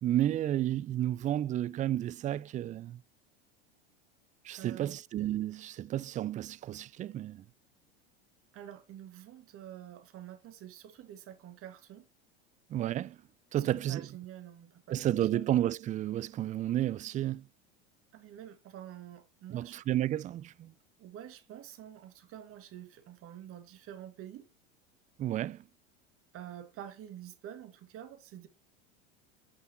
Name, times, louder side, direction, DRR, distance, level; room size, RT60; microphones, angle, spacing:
voice 1, 0.0-3.0 4.4-7.4 12.7-13.2 13.5-14.1 14.9-17.4 19.5-20.7 25.2-25.6, right 12 dB, 25° right, 0.4 m, -31 dB
voice 2, 4.5-5.0 8.5-12.1 13.5-15.4 18.1-19.8 21.0-24.5 26.3-28.5, right 11 dB, 45° right, 2.1 m, -48 dB
8.8 x 5.6 x 4.5 m
hypercardioid pair, 95°, 32 cm